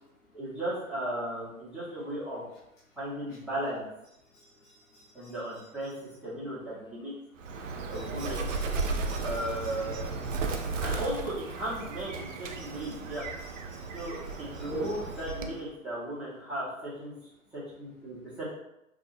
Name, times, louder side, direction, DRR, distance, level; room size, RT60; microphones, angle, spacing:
voice 1, 0.3-2.4 3.0-3.9 5.1-5.9 6.2-7.1 7.9-8.5 9.2-10.2 10.8-13.2 13.9-17.1 17.5-18.5, right 1 dB, 5° right, -10 dB, 1.0 m, -36 dB
voice 2, 4.6-5.3 7.9-10.0 10.3-10.7 12.6-12.9 13.7-14.1 14.5-15.0, right 2 dB, 65° left, -6 dB, 1.0 m, -43 dB
Bird, 7.4-15.7, right 3 dB, 65° right, 0.5 m, -35 dB
2.6 x 2.3 x 2.5 m, 0.84 s
figure-of-eight pair, 110°, 41 cm